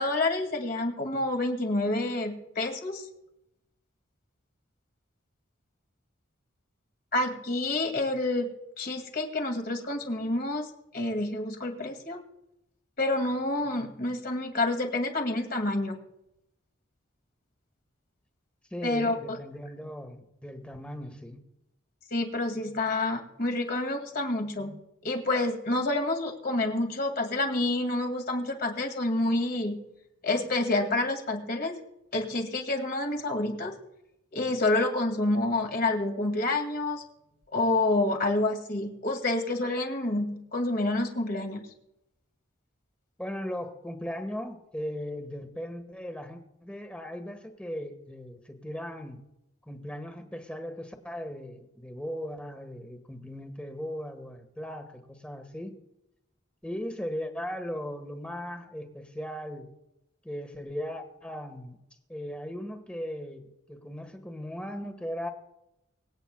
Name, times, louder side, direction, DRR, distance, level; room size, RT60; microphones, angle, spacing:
voice 1, 0.0-3.1 7.1-8.5 8.8-12.2 13.0-16.0 18.8-19.1 22.1-29.8 30.2-31.8 32.1-33.7 34.3-37.0 37.5-41.6, left 2 dB, 50° left, 4 dB, 2.2 m, -28 dB
voice 2, 18.7-21.4 43.2-49.2 49.7-55.7 56.6-59.7 60.2-61.8 62.1-65.3, equal, 5° left, 6 dB, 1.3 m, -38 dB
24.5 x 9.1 x 2.2 m, 0.84 s
head